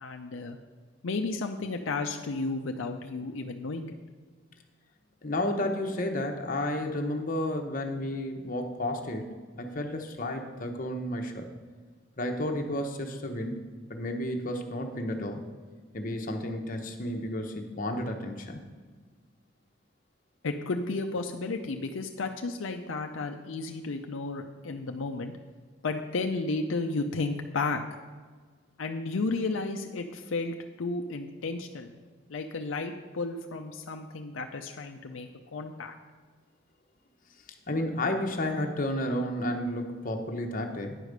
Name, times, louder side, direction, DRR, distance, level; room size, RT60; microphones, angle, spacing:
voice 1, 0.0-0.6 1.0-3.9 20.4-25.3 25.8-27.8 28.8-31.9 32.3-36.0, left 3 dB, 75° left, 4 dB, 0.5 m, -33 dB
voice 2, 5.2-11.5 12.2-13.6 13.9-15.4 15.9-18.6 37.7-41.1, left 1 dB, 45° left, 3 dB, 0.9 m, -32 dB
9.8 x 4.9 x 6.6 m, 1.5 s
head